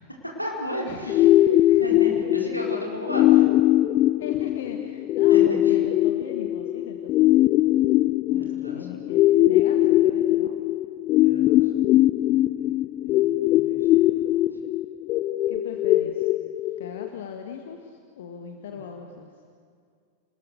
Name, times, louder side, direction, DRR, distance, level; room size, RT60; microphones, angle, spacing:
voice 1, 0.4-1.3 1.8-3.5 5.3-5.8 8.3-8.9 11.2-11.7 12.2-12.7 13.0-14.6 18.6-18.8, equal, 90° left, -2 dB, 4.4 m, -35 dB
sound 1, 1.1-17.1, left 14 dB, 35° left, 0.5 m, -21 dB
voice 2, 1.4-1.8 4.2-7.2 8.3-10.6 15.5-16.3 16.8-19.3, left 7 dB, 60° left, 4 dB, 1.6 m, -40 dB
27.5 x 20.0 x 6.7 m, 2.2 s
figure-of-eight pair, 90°, 0 cm